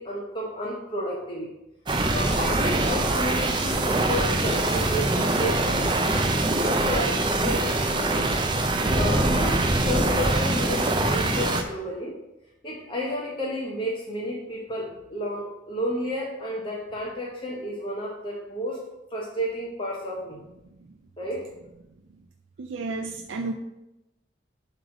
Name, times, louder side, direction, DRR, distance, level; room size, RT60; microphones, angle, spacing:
voice 1, 0.0-1.5 2.1-6.2 6.6-8.3 8.9-12.2 12.6-18.8 19.1-20.4 21.2-21.5, equal, 25° left, -3 dB, 1.0 m, -31 dB
sound 1, 1.9-11.6, right 2 dB, 25° right, 0.5 m, -23 dB
voice 2, 22.6-23.5, right 3 dB, 85° right, 5 dB, 0.5 m, -31 dB
7.7 x 3.2 x 6.1 m, 0.93 s
head